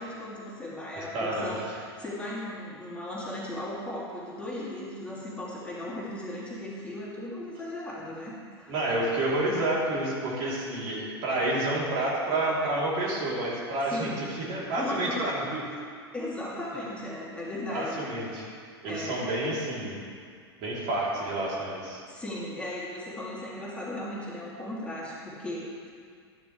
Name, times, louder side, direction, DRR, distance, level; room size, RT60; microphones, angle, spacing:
voice 1, 0.0-8.7 13.9-14.3 14.8-15.3 16.1-18.4 18.8-19.2 22.1-25.9, left 1 dB, 10° left, -7 dB, 2.9 m, -37 dB
voice 2, 1.0-1.6 8.7-15.6 17.7-18.5 18.8-20.0 20.6-22.0, right 1 dB, 50° right, -5 dB, 3.4 m, -29 dB
12.5 x 11.5 x 3.3 m, 2.1 s
hypercardioid pair, 95°, 14 cm